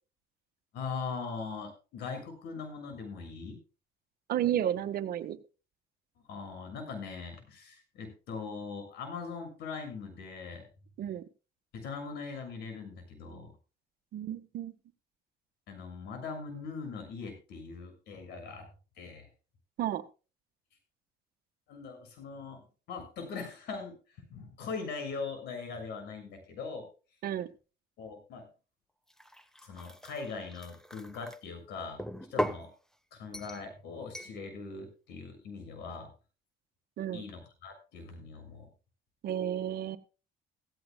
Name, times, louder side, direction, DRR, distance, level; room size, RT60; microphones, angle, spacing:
voice 1, 0.7-3.6 6.2-10.7 11.7-13.5 15.7-18.7 18.9-19.3 21.7-23.9 24.3-26.9 28.0-28.5 29.6-32.0 32.3-32.7 33.1-36.1 37.1-38.7, left 4 dB, 80° left, 6 dB, 6.8 m, -41 dB
voice 2, 4.3-5.4 11.0-11.2 14.1-14.7 19.8-20.0 27.2-27.5 37.0-37.2 39.2-40.0, right 11 dB, 65° right, 10 dB, 1.5 m, -32 dB
sound 1, 29.1-31.4 32.0-32.7 33.3-33.7 34.1-34.4, left 1 dB, 5° left, 1.1 m, -38 dB
16.0 x 16.0 x 2.3 m, 0.33 s
cardioid pair, 110°, 17 cm